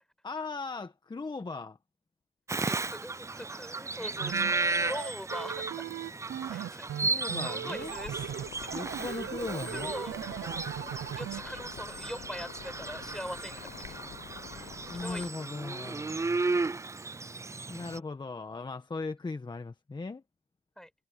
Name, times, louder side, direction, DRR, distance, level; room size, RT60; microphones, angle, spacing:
voice 1, 0.2-1.8 7.0-8.0 8.7-9.9 14.9-16.4 17.7-20.2, left 3 dB, 25° left, 1.4 m, -38 dB
Bird vocalization bird call bird song, 2.5-18.0, right 3 dB, 15° right, 0.4 m, -35 dB
voice 2, 2.6-5.9 6.5-6.9 7.1-9.3 9.7-14.0 14.4-15.3 20.8-20.9, equal, 5° left, 6.1 m, -43 dB
sound 1, 4.2-11.4, right 11 dB, 70° right, 0.8 m, -38 dB
sound 2, 7.7-15.3, left 11 dB, 70° left, 0.9 m, -48 dB
cardioid pair, 85°, 19 cm